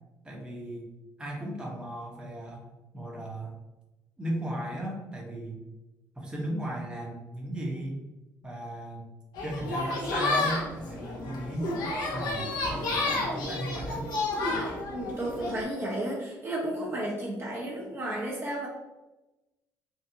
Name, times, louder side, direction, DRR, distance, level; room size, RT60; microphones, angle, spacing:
voice 1, 0.2-0.9 1.2-2.7 2.9-3.5 4.2-5.6 6.1-8.0 8.4-9.1 9.4-11.7 12.1-14.1, right 1 dB, 10° right, -2 dB, 1.0 m, -36 dB
sound 1, 9.3-15.6, left 2 dB, 75° left, 0.9 m, -31 dB
voice 2, 14.9-18.7, right 1 dB, 35° right, -4 dB, 0.9 m, -33 dB
3.6 x 2.4 x 2.8 m, 1.0 s
supercardioid pair, 75°, 7 cm